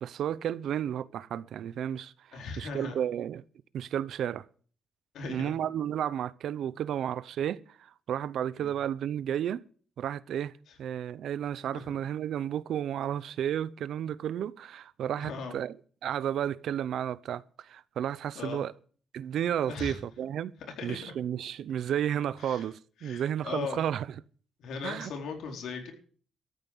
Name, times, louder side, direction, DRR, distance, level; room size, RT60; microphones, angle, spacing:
voice 1, 0.0-3.4 3.7-4.5 5.3-9.6 10.0-10.5 10.8-15.7 16.0-18.7 19.1-20.5 20.8-24.1 24.8-25.1, right 10 dB, 75° right, 0.7 m, -32 dB
voice 2, 2.3-3.0 5.1-5.5 8.6-8.7 11.7-11.8 15.2-15.6 18.3-18.6 19.7-20.0 20.8-21.1 22.4-22.7 23.0-23.9 24.6-25.9, left 5 dB, 80° left, 4.3 m, -38 dB
13.5 x 9.2 x 7.9 m
cardioid pair, 135°, 0 cm